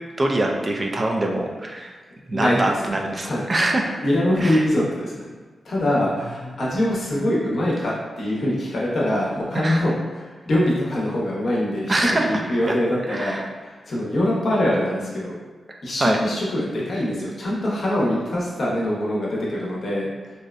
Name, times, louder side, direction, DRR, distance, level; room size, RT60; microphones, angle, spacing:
voice 1, 0.2-1.9 2.3-3.9 4.4-4.6 9.5-9.8 11.9-12.7 13.1-13.5 15.7-16.2, right 1 dB, 35° right, 1 dB, 0.3 m, -24 dB
voice 2, 2.3-2.7 3.2-3.5 4.0-5.3 5.6-15.3 15.8-20.1, left 1 dB, 65° left, -5 dB, 0.6 m, -23 dB
2.6 x 2.0 x 2.4 m, 1.3 s
cardioid pair, 70°, 0 cm